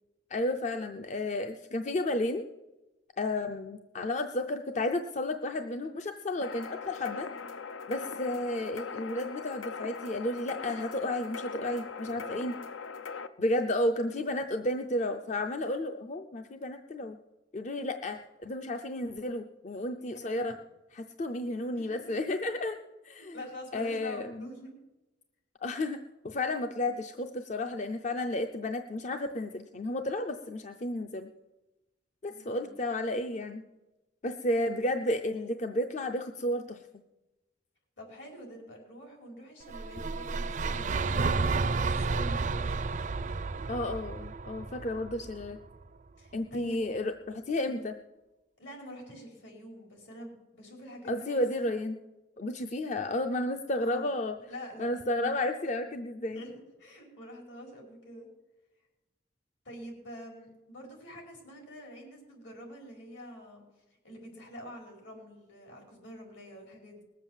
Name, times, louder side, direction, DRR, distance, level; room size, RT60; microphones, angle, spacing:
voice 1, 0.3-2.4 3.2-7.3 7.9-12.5 13.4-17.2 17.5-20.5 20.9-22.8 23.0-23.4 23.7-24.5 25.6-31.3 32.2-33.6 34.2-36.8 43.7-45.6 46.3-47.9 51.1-52.0 52.4-54.4 54.8-56.4, left 1 dB, 40° left, 7 dB, 0.5 m, -32 dB
sound 1, 6.4-13.3, left 5 dB, 90° left, 0.7 m, -40 dB
voice 2, 20.0-20.4 21.7-22.2 23.2-24.7 32.3-32.8 38.0-41.3 41.7-43.0 46.2-46.9 47.6-47.9 48.6-51.8 53.8-54.2 54.5-55.3 56.3-56.5 56.8-58.3 59.6-63.6 64.0-67.0, equal, 75° left, 1 dB, 4.6 m, -46 dB
sound 2, 39.7-45.8, right 4 dB, 40° right, 0.4 m, -31 dB
19.5 x 7.4 x 7.2 m, 1.1 s
head